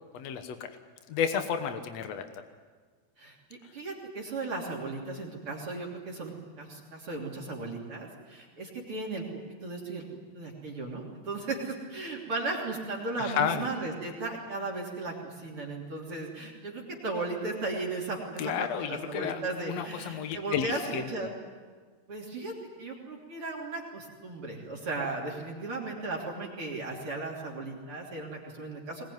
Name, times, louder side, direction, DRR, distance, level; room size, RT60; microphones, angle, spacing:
voice 1, 0.1-0.7 1.1-2.2 13.2-13.7 18.4-19.4 19.7-21.1, left 8 dB, 70° left, 7 dB, 1.5 m, -31 dB
voice 2, 3.7-9.2 9.6-10.1 10.3-21.3 22.1-29.0, right 3 dB, 35° right, -2 dB, 3.5 m, -36 dB
21.5 x 21.0 x 9.4 m, 1.5 s
omnidirectional pair, 4.8 m